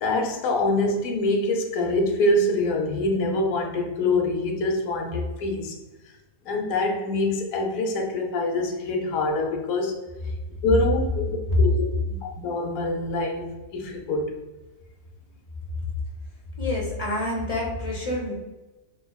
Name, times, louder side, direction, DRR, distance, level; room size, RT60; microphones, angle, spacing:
voice 1, 0.0-5.8 6.5-10.0 10.6-14.3, left 2 dB, 80° left, 1 dB, 1.0 m, -25 dB
voice 2, 16.6-18.3, left 1 dB, 35° left, -3 dB, 0.7 m, -27 dB
5.2 x 2.3 x 2.3 m, 1.1 s
omnidirectional pair, 1.4 m